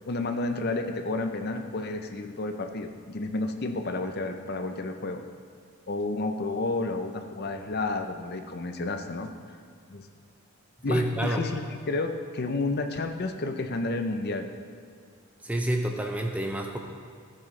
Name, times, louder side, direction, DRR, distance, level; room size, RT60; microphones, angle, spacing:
voice 1, 0.1-5.2 5.9-9.3 9.9-10.1 10.8-14.5, left 2 dB, 45° left, 6 dB, 0.6 m, -31 dB
voice 2, 10.9-11.4 15.4-16.8, right 1 dB, 5° right, 2 dB, 0.5 m, -28 dB
14.5 x 6.2 x 3.3 m, 2.1 s
head